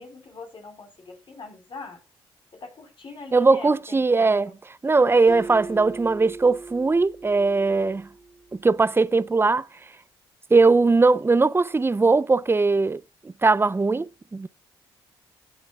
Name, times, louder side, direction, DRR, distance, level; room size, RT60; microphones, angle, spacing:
voice 1, 0.0-2.0 2.5-4.5, left 3 dB, 50° left, 4.6 m, -42 dB
voice 2, 3.3-4.5 4.8-8.1 8.5-9.7 10.5-14.5, right 3 dB, 20° right, 0.6 m, -20 dB
Acoustic guitar, 5.3-8.7, right 3 dB, 80° left, 7.6 m, -40 dB
17.0 x 7.6 x 2.4 m
supercardioid pair, 55°, 11 cm